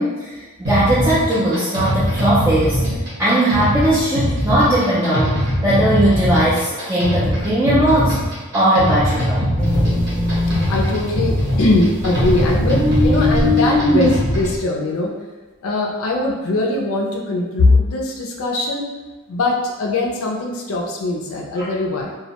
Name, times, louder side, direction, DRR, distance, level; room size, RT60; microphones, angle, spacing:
voice 1, 0.0-2.8 3.2-5.4 5.6-8.2 8.5-9.5 21.6-21.7, right 1 dB, 15° right, -10 dB, 0.3 m, -18 dB
sound 1, 0.6-14.6, equal, 55° right, 0.8 m, -22 dB
sound 2, 9.6-14.6, left 1 dB, 5° left, 0.7 m, -20 dB
voice 2, 10.4-15.1 15.6-18.9 19.3-22.1, left 2 dB, 80° left, 0 dB, 0.4 m, -21 dB
2.2 x 2.1 x 2.8 m, 1.2 s
head